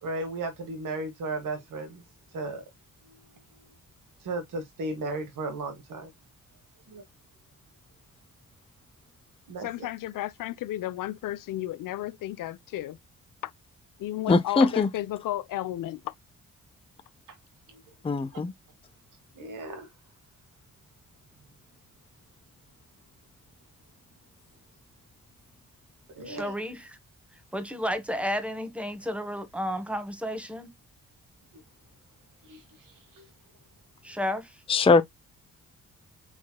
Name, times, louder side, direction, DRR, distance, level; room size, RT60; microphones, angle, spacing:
voice 1, 0.0-2.0 2.3-2.6 3.1-3.2 4.2-6.1 6.9-7.0 9.5-9.9 17.7-17.8 19.3-19.9 26.1-26.5 32.4-33.3, right 2 dB, 60° right, 1.6 m, -35 dB
voice 2, 9.6-13.0 13.4-13.5 14.0-16.1, left 14 dB, 65° left, 0.6 m, -33 dB
voice 3, 14.3-14.9 18.0-18.5 34.7-35.0, left 4 dB, 15° left, 0.5 m, -21 dB
voice 4, 26.2-27.0 27.5-30.7 34.0-34.6, equal, 5° right, 1.4 m, -32 dB
4.4 x 4.0 x 2.3 m
hypercardioid pair, 40°, 36 cm